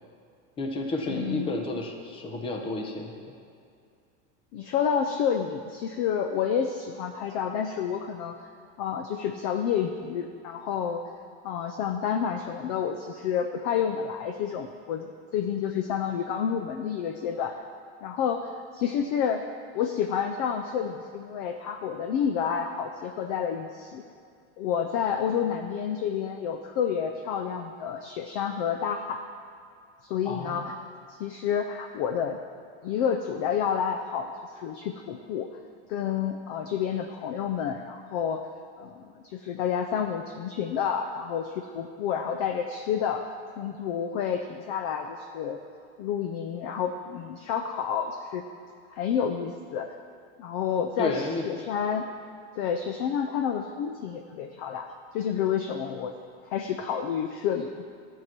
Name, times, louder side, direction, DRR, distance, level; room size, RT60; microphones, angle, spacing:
voice 1, 0.6-3.1 30.2-30.6 51.0-51.5, left 2 dB, 15° left, 2 dB, 0.8 m, -31 dB
voice 2, 1.1-1.6 4.5-8.5 8.8-11.1 11.4-17.6 18.0-19.4 19.7-24.0 24.6-29.2 30.0-30.7 31.1-32.4 32.8-35.5 35.9-38.4 38.8-45.6 46.0-48.4 48.9-49.9 50.4-52.1 52.6-56.1 56.4-57.7, left 8 dB, 35° left, 5 dB, 0.4 m, -29 dB
12.5 x 4.6 x 7.3 m, 2.3 s
supercardioid pair, 170°, 34 cm